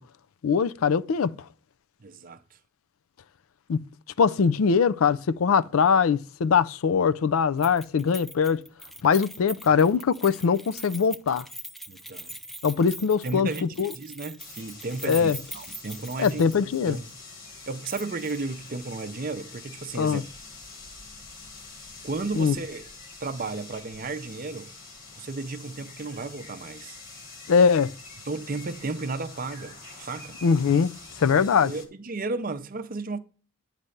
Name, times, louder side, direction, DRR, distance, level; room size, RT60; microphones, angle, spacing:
voice 1, 0.4-1.3 3.7-3.8 4.2-8.6 9.0-11.5 12.6-13.5 13.8-13.9 15.0-15.4 16.2-17.0 19.9-20.2 22.3-22.6 27.5-27.9 30.4-30.9 31.2-31.7, left 6 dB, 75° left, 0.4 m, -22 dB
voice 2, 2.0-2.4 11.9-12.4 13.2-16.5 16.9-17.1 17.7-20.2 22.0-22.8 23.2-24.7 25.1-27.0 28.2-30.4 31.6-33.2, right 3 dB, 40° right, 0.6 m, -34 dB
Keys jangling, 7.6-16.8 17.1-17.2 17.8-18.4 18.7-18.8, equal, ahead, 0.3 m, -42 dB
sound 1, 14.4-31.9, left 3 dB, 40° left, 1.5 m, -46 dB
9.7 x 3.3 x 6.5 m
head